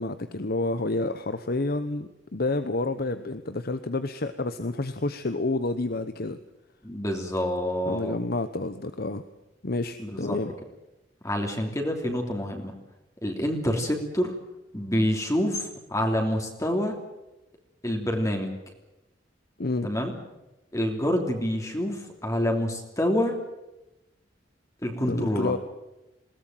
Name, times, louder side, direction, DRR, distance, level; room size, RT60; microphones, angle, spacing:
voice 1, 0.0-6.4 7.9-9.2 9.6-10.5 19.6-19.9 25.1-25.6, left 2 dB, 55° left, 10 dB, 1.0 m, -29 dB
voice 2, 6.8-8.1 10.0-10.4 11.2-12.7 13.2-14.4 14.7-17.0 17.8-18.5 19.8-20.1 20.7-23.4 24.8-25.5, equal, 20° left, 2 dB, 3.1 m, -27 dB
21.5 x 18.0 x 9.1 m, 0.97 s
head